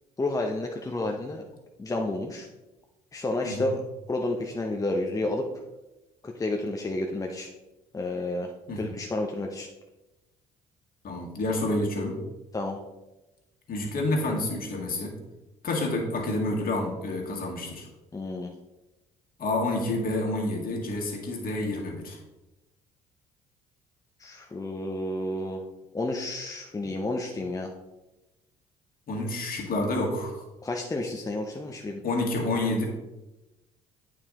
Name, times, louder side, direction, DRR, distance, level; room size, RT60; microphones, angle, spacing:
voice 1, 0.2-1.4 1.8-2.5 3.1-3.8 4.1-5.5 6.2-7.5 7.9-9.7 12.5-12.8 18.1-18.5 24.2-25.6 25.9-27.7 30.6-32.0, left 2 dB, 15° left, 2 dB, 0.8 m, -30 dB
voice 2, 8.7-9.0 11.0-12.2 13.7-15.1 15.6-17.9 19.4-22.2 29.1-30.4 32.0-32.8, left 2 dB, 50° left, 0 dB, 2.0 m, -29 dB
8.7 x 4.7 x 3.7 m, 1.0 s
hypercardioid pair, 55°, 19 cm